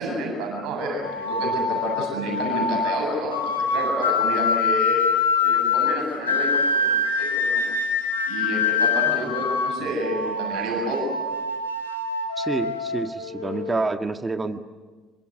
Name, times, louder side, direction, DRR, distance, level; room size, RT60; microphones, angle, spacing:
voice 1, 0.0-5.0 5.4-7.6 8.2-11.2, right 1 dB, 60° right, 1 dB, 7.9 m, -29 dB
sound 1, 1.0-13.8, left 4 dB, 90° left, 2.5 m, -25 dB
voice 2, 12.4-14.6, right 3 dB, 25° right, 7 dB, 1.8 m, -28 dB
26.5 x 24.0 x 8.0 m, 1.4 s
figure-of-eight pair, 50°, 0 cm